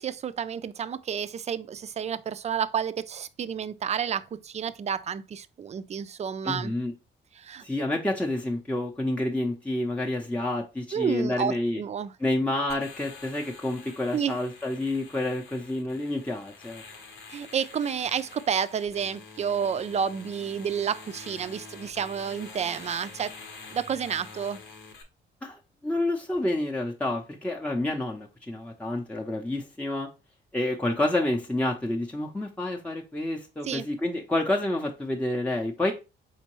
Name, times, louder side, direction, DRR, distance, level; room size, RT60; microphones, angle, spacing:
voice 1, 0.0-6.7 7.4-7.6 10.9-12.1 14.1-14.4 17.3-23.4 23.7-24.6 33.6-33.9, right 7 dB, 35° right, 0.4 m, -30 dB
voice 2, 6.4-6.9 7.6-11.8 12.2-16.8 25.4-30.1 30.5-35.9, left 1 dB, 5° left, 0.6 m, -29 dB
sound 1, 12.7-25.0, left 4 dB, 75° left, 1.0 m, -47 dB
4.3 x 3.7 x 3.0 m
cardioid pair, 90°, 20 cm